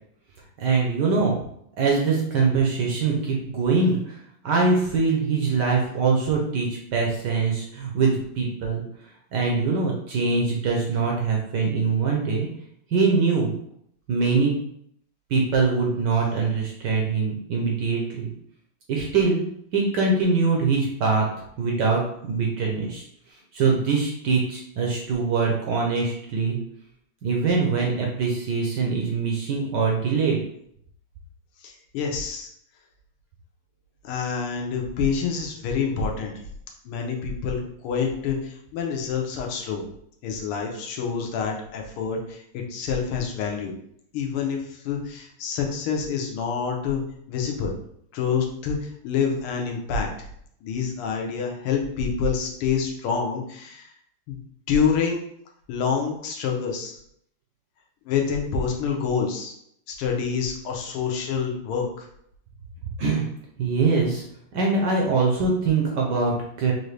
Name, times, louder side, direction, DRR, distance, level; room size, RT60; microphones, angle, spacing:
voice 1, 0.6-1.4 1.8-4.2 4.4-8.8 9.3-12.5 12.9-13.5 14.1-14.5 15.3-18.3 18.9-19.4 19.7-21.2 21.6-23.0 23.5-26.6 27.2-30.4 63.0-63.2 63.6-64.2 64.5-66.7, right 4 dB, 70° right, -1 dB, 1.1 m, -23 dB
voice 2, 31.6-32.5 34.0-36.3 36.8-39.9 40.2-43.8 44.1-47.0 47.3-47.8 48.1-50.1 50.6-53.9 54.3-54.4 54.7-55.2 55.7-57.0 58.0-59.5 59.9-62.1, left 6 dB, 80° left, 1 dB, 1.7 m, -27 dB
4.6 x 2.6 x 3.2 m, 0.70 s
omnidirectional pair, 2.4 m